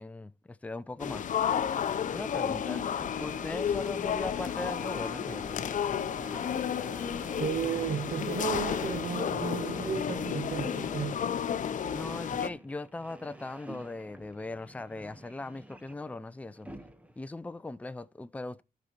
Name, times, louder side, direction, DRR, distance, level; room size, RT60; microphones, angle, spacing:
voice 1, 0.0-1.6 2.1-2.8 3.2-5.6 11.9-16.7 17.2-18.6, left 2 dB, 10° left, 0.5 m, -39 dB
sound 1, 0.9-17.2, right 1 dB, 10° right, 0.9 m, -47 dB
sound 2, 1.0-12.5, left 8 dB, 55° left, 0.7 m, -32 dB
voice 2, 7.3-11.2, right 7 dB, 55° right, 0.8 m, -34 dB
13.5 x 5.6 x 4.4 m
cardioid pair, 115°, 15 cm